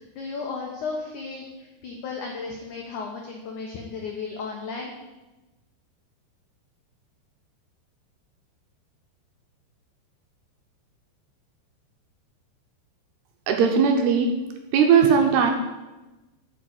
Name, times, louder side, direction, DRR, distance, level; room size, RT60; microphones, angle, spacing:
voice 1, 0.0-4.9, left 4 dB, 85° left, 0 dB, 1.7 m, -34 dB
voice 2, 13.5-14.3 14.7-15.5, right 6 dB, 75° right, 3 dB, 2.7 m, -18 dB
9.4 x 5.7 x 7.9 m, 1.1 s
omnidirectional pair, 5.3 m